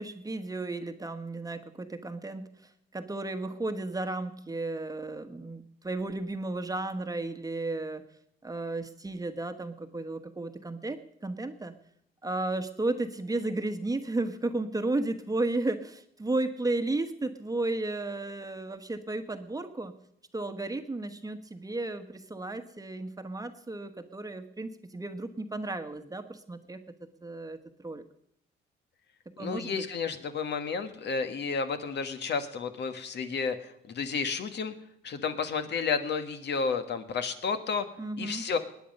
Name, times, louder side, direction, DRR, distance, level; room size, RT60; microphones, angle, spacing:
voice 1, 0.0-8.0 8.4-11.7 12.2-19.9 20.3-26.8 27.2-27.6 27.8-28.0 29.4-29.8 38.0-38.4, right 2 dB, 20° right, 8 dB, 1.2 m, -33 dB
voice 2, 29.4-34.7 35.0-37.9 38.2-38.6, left 5 dB, 60° left, 9 dB, 1.4 m, -31 dB
19.5 x 9.5 x 5.4 m, 0.74 s
cardioid pair, 90°, 20 cm